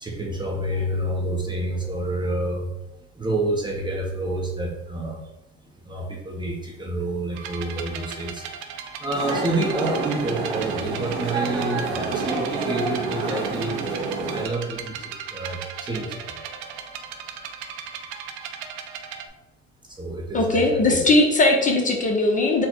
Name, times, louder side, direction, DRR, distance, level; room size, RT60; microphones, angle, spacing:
voice 1, 0.0-2.7 3.2-5.2 5.9-8.4 9.0-15.0 15.3-16.1 20.0-21.0, right 1 dB, 15° right, 0 dB, 0.6 m, -28 dB
sound 1, 7.3-19.3, right 7 dB, 60° right, 0.6 m, -37 dB
sound 2, 9.1-14.5, right 4 dB, 85° right, 1.0 m, -29 dB
voice 2, 20.3-22.7, left 2 dB, 25° left, 1 dB, 0.7 m, -19 dB
4.0 x 2.1 x 4.5 m, 0.98 s
supercardioid pair, 105°, 33 cm